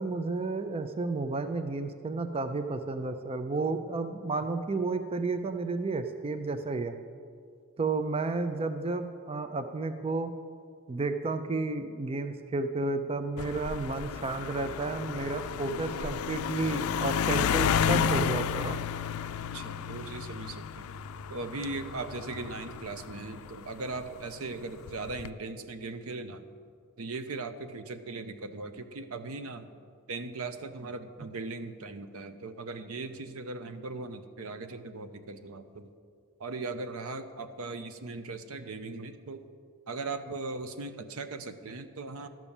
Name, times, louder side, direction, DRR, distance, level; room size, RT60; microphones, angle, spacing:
voice 1, 0.0-7.0 7.8-10.3 10.9-18.8, right 3 dB, 25° right, 9 dB, 0.4 m, -32 dB
sound 1, 13.4-24.1 24.9-25.3, left 7 dB, 85° left, 0.4 m, -32 dB
voice 2, 19.5-20.9 21.3-26.5 27.0-29.7 30.1-35.9 36.4-39.5 39.9-42.3, right 3 dB, 75° right, 10 dB, 0.7 m, -39 dB
12.0 x 6.1 x 7.1 m, 2.2 s
head